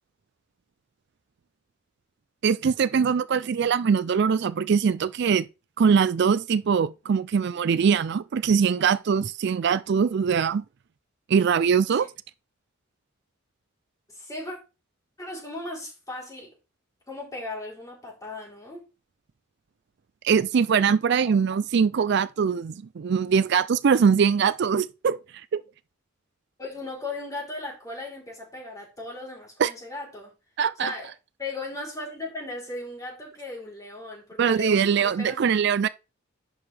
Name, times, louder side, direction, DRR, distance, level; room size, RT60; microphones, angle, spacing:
voice 1, 2.4-5.5 5.8-10.6 11.3-12.1 20.2-25.2 25.5-25.6 29.6-29.7 30.6-30.9 34.4-35.9, right 6 dB, 55° right, 0.4 m, -22 dB
voice 2, 14.1-14.6 15.2-16.5 17.1-18.8 21.2-21.4 26.6-30.3 30.8-31.1 31.4-35.5, left 2 dB, 15° left, 3.7 m, -37 dB
10.5 x 5.3 x 3.4 m
head